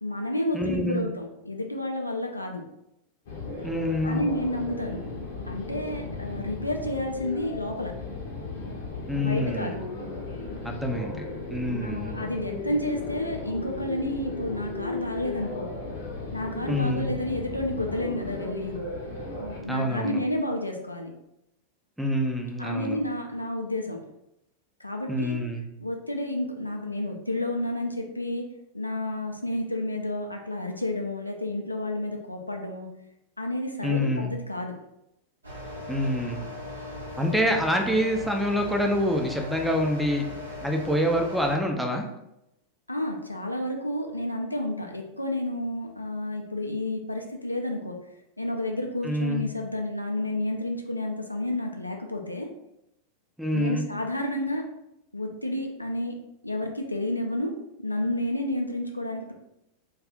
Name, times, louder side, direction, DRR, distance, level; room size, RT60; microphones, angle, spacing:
voice 1, 0.0-2.6 4.0-5.0 5.4-7.9 9.1-9.8 11.8-15.7 16.3-18.8 19.6-21.1 22.6-24.0 24.8-25.4 25.8-28.5 28.7-32.9 33.4-34.7 42.9-48.0 48.4-52.5 53.5-54.6 55.1-56.2 56.4-57.5 57.8-59.3, left 1 dB, 85° left, 2 dB, 0.4 m, -30 dB
voice 2, 0.5-1.1 3.6-4.3 9.1-9.8 10.6-12.1 16.7-17.1 19.7-20.2 22.0-23.0 25.1-25.6 33.8-34.3 35.9-36.4 37.2-40.3 40.6-42.0 49.0-49.4 53.4-53.8, equal, 5° right, 2 dB, 0.4 m, -26 dB
sound 1, 3.3-19.6, left 3 dB, 55° left, 0.7 m, -36 dB
sound 2, 35.4-41.6, left 2 dB, 80° right, 0.8 m, -38 dB
2.4 x 2.3 x 3.5 m, 0.84 s
figure-of-eight pair, 90°, 0 cm